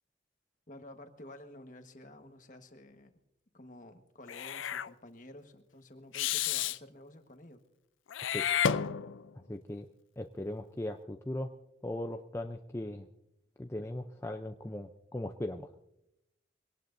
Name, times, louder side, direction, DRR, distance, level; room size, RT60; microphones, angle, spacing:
voice 1, 0.7-3.1 3.5-7.6, left 1 dB, 40° left, 6 dB, 1.4 m, -51 dB
Meow / Hiss, 4.3-4.9 6.1-6.8 8.1-9.3, left 8 dB, 90° left, 0.5 m, -31 dB
voice 2, 9.5-9.9 10.2-11.5 11.8-13.1 13.6-15.7, left 1 dB, 15° left, 4 dB, 0.5 m, -38 dB
23.0 x 18.5 x 2.6 m, 0.84 s
head